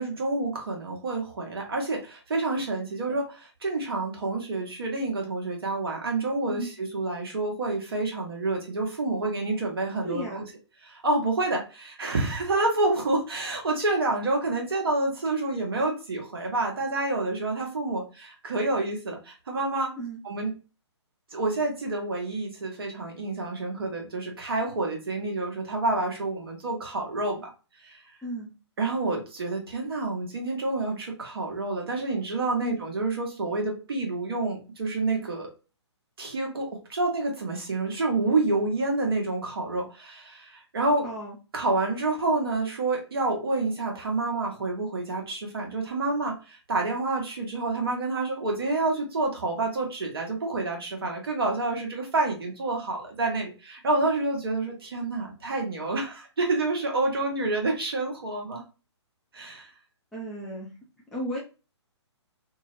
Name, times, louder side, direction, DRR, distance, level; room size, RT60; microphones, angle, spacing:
voice 1, 0.0-10.4 10.8-19.9 20.2-20.5 21.3-27.5 27.8-28.0 28.8-35.5 36.2-41.1 41.5-58.6 59.3-59.7, right 2 dB, 55° right, 1 dB, 1.1 m, -28 dB
voice 2, 10.0-10.5 20.0-20.2 28.2-28.5 32.6-32.8 41.0-41.4 60.1-60.7 61.1-61.4, right 1 dB, 5° left, -6 dB, 0.4 m, -34 dB
2.8 x 2.0 x 3.0 m, 0.32 s
figure-of-eight pair, 130°, 15 cm